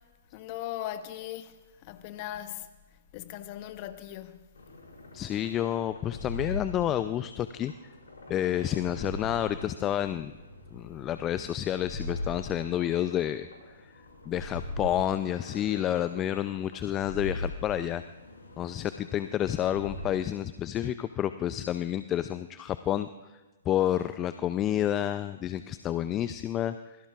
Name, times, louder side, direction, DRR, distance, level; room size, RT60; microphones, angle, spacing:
voice 1, 0.3-2.7 3.1-4.5, left 12 dB, 40° left, 1.1 m, -39 dB
sound 1, 4.5-20.1, left 1 dB, 75° left, 5.4 m, -41 dB
voice 2, 5.1-7.7 8.3-10.3 10.7-13.9 14.3-18.0 18.6-23.1 23.7-27.0, left 11 dB, 25° left, 0.5 m, -29 dB
26.5 x 22.0 x 2.5 m
figure-of-eight pair, 120°, 0 cm